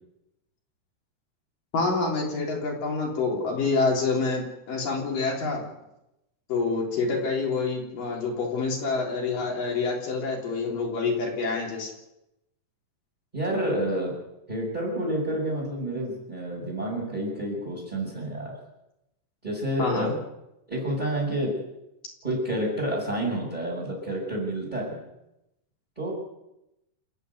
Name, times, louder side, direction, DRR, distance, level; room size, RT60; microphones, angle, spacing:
voice 1, 1.7-5.7 6.5-11.9 19.8-20.1, left 4 dB, 65° left, 0 dB, 5.2 m, -27 dB
voice 2, 13.3-14.1 14.5-18.5 19.4-20.1 20.7-21.5 22.2-25.0 26.0-26.1, right 1 dB, 10° right, -6 dB, 6.1 m, -29 dB
28.5 x 10.0 x 9.5 m, 0.89 s
omnidirectional pair, 4.1 m